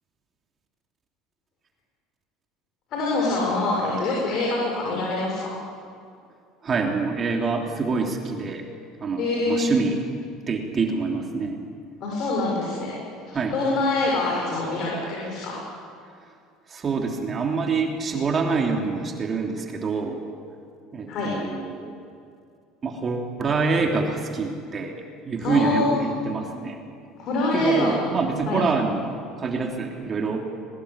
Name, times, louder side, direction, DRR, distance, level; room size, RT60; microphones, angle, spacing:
voice 1, 2.9-5.4 9.2-9.7 12.0-12.9 13.5-15.6 21.1-21.3 25.4-25.9 27.2-27.9 28.5-28.6, left 3 dB, 55° left, -3 dB, 7.1 m, -25 dB
voice 2, 6.6-8.6 9.0-10.0 10.5-11.6 13.3-13.6 16.7-20.2 20.9-21.9 22.8-26.8 27.5-30.5, right 4 dB, 35° right, 2 dB, 3.3 m, -26 dB
23.0 x 19.5 x 8.6 m, 2.4 s
supercardioid pair, 95°, 0 cm